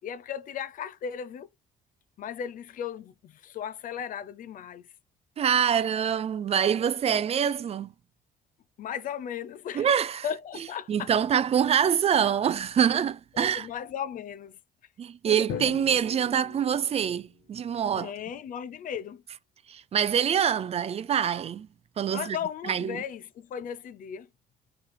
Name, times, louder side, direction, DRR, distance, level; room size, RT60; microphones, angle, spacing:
voice 1, 0.0-1.5 2.2-4.8 8.8-9.9 10.2-11.1 13.3-14.6 15.2-15.4 17.9-19.2 22.1-24.3, left 8 dB, 55° left, 0.5 m, -36 dB
voice 2, 5.4-7.9 9.7-10.2 10.9-13.7 15.0-18.1 19.7-21.7 22.0-22.4 22.7-23.0, right 8 dB, 35° right, 0.4 m, -25 dB
Drum, 15.5-17.6, left 7 dB, 80° left, 1.1 m, -40 dB
4.5 x 3.2 x 3.3 m
cardioid pair, 110°, 17 cm